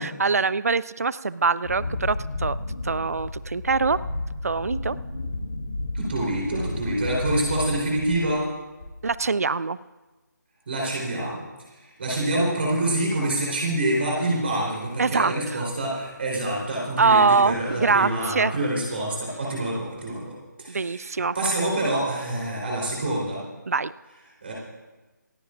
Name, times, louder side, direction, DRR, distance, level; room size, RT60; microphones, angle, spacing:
voice 1, 0.0-2.6 2.8-4.0 4.4-5.0 9.0-9.8 15.0-15.7 17.0-18.5 20.7-21.4 23.7-23.9, right 4 dB, 50° right, 19 dB, 0.4 m, -23 dB
Wind, 1.6-8.5 8.8-9.3, left 2 dB, 45° left, 3.7 m, -32 dB
voice 2, 5.9-8.5 10.7-11.4 11.7-23.4 24.4-24.5, right 1 dB, 35° right, -3 dB, 3.8 m, -26 dB
27.0 x 15.0 x 2.5 m, 1.2 s
figure-of-eight pair, 155°, 10 cm